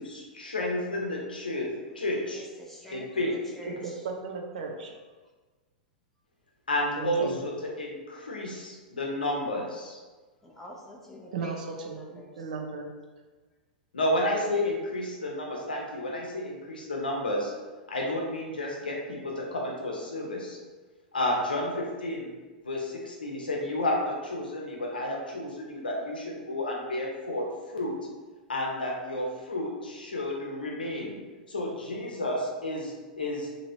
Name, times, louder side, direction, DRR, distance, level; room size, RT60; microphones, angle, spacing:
voice 1, 0.0-1.7 1.9-2.4 2.9-3.3 6.7-10.0 13.9-17.5 17.9-20.6 21.1-22.3 22.6-27.5 27.7-27.9 28.5-31.1 31.5-33.5, left 1 dB, 85° left, -1 dB, 0.7 m, -31 dB
voice 2, 2.3-4.0 4.6-5.0 10.4-12.3, equal, 5° left, -4 dB, 0.6 m, -47 dB
voice 3, 3.8-4.9 7.0-7.4 11.3-12.9, right 4 dB, 65° right, 2 dB, 0.5 m, -35 dB
2.9 x 2.7 x 2.7 m, 1.3 s
hypercardioid pair, 100°, 5 cm